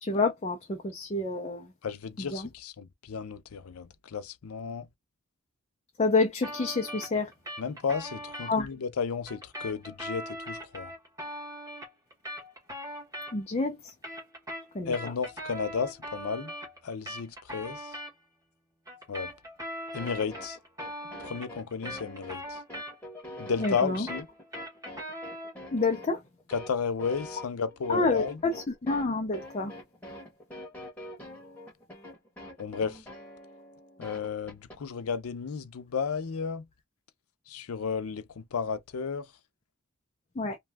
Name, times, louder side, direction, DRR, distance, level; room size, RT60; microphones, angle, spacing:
voice 1, 0.0-1.7 2.2-2.5 6.0-7.3 8.5-8.7 13.3-13.9 14.7-14.9 23.6-24.1 25.7-26.2 27.9-29.7 40.4-40.6, left 3 dB, 30° left, 0.4 m, -28 dB
voice 2, 1.8-4.9 7.6-10.9 14.8-16.5 16.8-17.9 19.1-19.3 19.9-20.6 21.2-22.6 23.4-24.3 26.5-28.4 32.6-33.0 34.0-36.6 37.5-39.3, left 6 dB, 80° left, 0.5 m, -33 dB
sound 1, 6.4-8.5 9.3-13.6 13.9-18.1 18.9-23.2 23.5-25.6, equal, 15° right, 1.1 m, -40 dB
sound 2, 19.9-34.8, left 1 dB, 5° left, 1.0 m, -45 dB
2.7 x 2.3 x 3.3 m
head